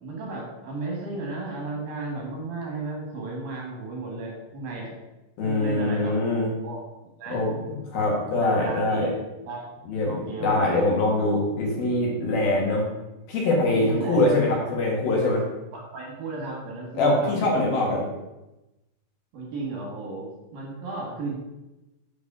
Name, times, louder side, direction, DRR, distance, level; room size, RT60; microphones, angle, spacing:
voice 1, 0.0-4.9 5.4-6.2 6.6-6.8 7.2-7.4 8.4-9.1 9.5-9.7 10.0-10.6 13.7-14.2 15.7-17.3 19.3-21.4, right 3 dB, 60° right, -1 dB, 3.2 m, -34 dB
voice 2, 5.4-6.5 7.3-7.5 7.9-9.1 9.9-10.1 10.4-12.9 13.3-15.5 17.0-18.1, left 2 dB, 60° left, -2 dB, 3.2 m, -23 dB
7.5 x 5.3 x 6.1 m, 1.0 s
omnidirectional pair, 5.1 m